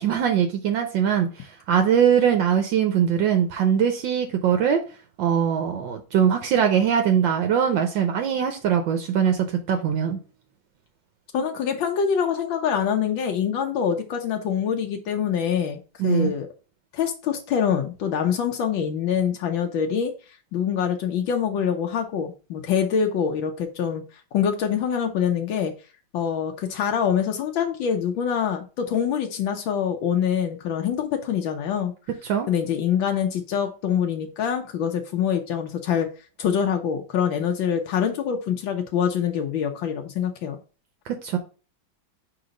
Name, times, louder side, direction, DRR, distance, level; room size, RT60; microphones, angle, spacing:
voice 1, 0.0-4.8 5.2-10.2 16.0-16.3 32.2-32.5 41.1-41.4, right 8 dB, 75° right, 1.4 m, -22 dB
voice 2, 11.3-16.5 16.9-20.1 20.5-24.0 24.3-25.7 26.1-31.9 32.5-36.1 36.4-40.6, left 8 dB, 75° left, 1.5 m, -25 dB
4.9 x 3.9 x 5.1 m
omnidirectional pair, 2.1 m